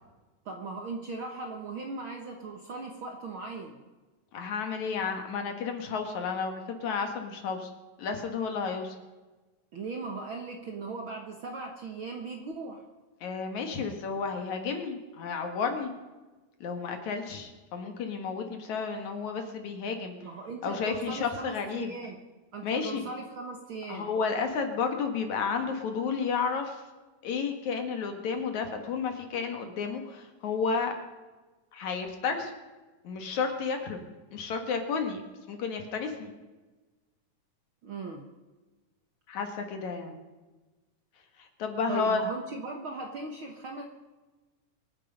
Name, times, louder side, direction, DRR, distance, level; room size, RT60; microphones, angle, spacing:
voice 1, 0.4-3.8 9.7-12.8 20.2-22.2 22.5-24.1 37.8-38.2 41.9-43.8, right 3 dB, 55° right, 2 dB, 1.5 m, -38 dB
voice 2, 4.3-7.7 8.0-9.0 13.2-15.9 16.6-20.1 20.6-21.9 22.6-23.1 23.9-26.8 27.2-30.9 31.7-32.5 33.0-34.0 34.3-35.2 35.5-36.3 39.3-40.2 41.4-42.3, left 5 dB, 60° left, 5 dB, 2.9 m, -32 dB
25.0 x 9.8 x 5.3 m, 1.2 s
omnidirectional pair, 3.8 m